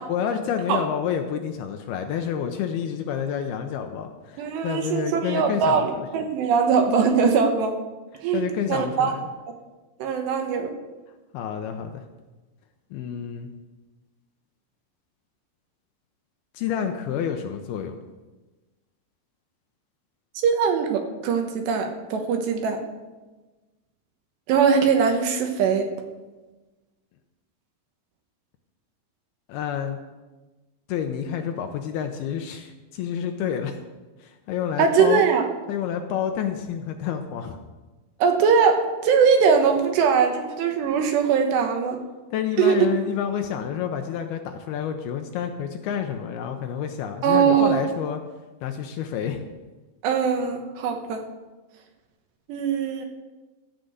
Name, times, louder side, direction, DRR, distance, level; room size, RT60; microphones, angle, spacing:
voice 1, 0.1-6.1 8.3-9.3 11.3-12.0 12.9-13.5 16.5-18.0 29.5-30.0 30.9-33.8 34.2-35.2 35.7-37.6 42.3-48.2 48.6-49.4, left 8 dB, 80° left, 5 dB, 2.2 m, -29 dB
voice 2, 4.4-7.7 8.2-9.1 10.0-10.7 20.4-22.8 24.5-25.9 34.8-35.4 38.2-42.0 42.6-42.9 47.2-47.8 50.0-51.2 52.5-53.1, right 6 dB, 75° right, 5 dB, 3.0 m, -21 dB
15.5 x 6.7 x 7.9 m, 1.2 s
omnidirectional pair, 5.5 m